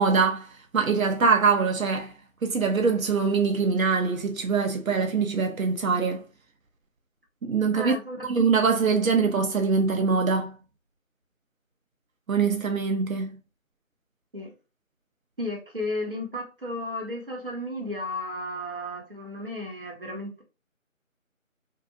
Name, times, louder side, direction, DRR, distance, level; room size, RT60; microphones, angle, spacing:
voice 1, 0.0-2.1 2.4-6.2 7.4-8.0 8.2-10.5 12.3-13.4, right 5 dB, 80° right, 0.6 m, -23 dB
voice 2, 7.8-8.3 14.3-14.5 15.4-20.4, left 1 dB, 40° right, 0.8 m, -33 dB
2.7 x 2.4 x 2.4 m
figure-of-eight pair, 175°, 41 cm